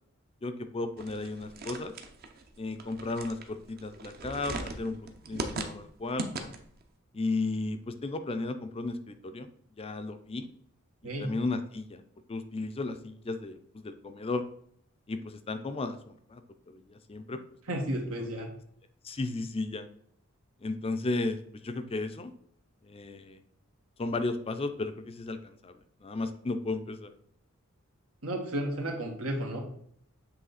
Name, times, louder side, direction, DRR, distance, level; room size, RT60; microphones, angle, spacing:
voice 1, 0.4-1.9 2.6-5.0 5.3-6.5 7.1-9.5 9.8-10.4 11.0-12.0 12.3-14.4 15.1-16.4 16.7-17.4 19.0-19.9 20.6-21.4 21.6-22.3 22.8-23.4 24.0-25.7 26.0-27.1, left 2 dB, 30° left, 9 dB, 0.4 m, -34 dB
sound 1, 1.0-6.8, right 2 dB, 45° right, 0.7 m, -39 dB
voice 2, 17.7-18.5 28.2-29.6, right 1 dB, 90° right, 1 dB, 1.5 m, -32 dB
7.5 x 3.2 x 4.0 m, 0.65 s
head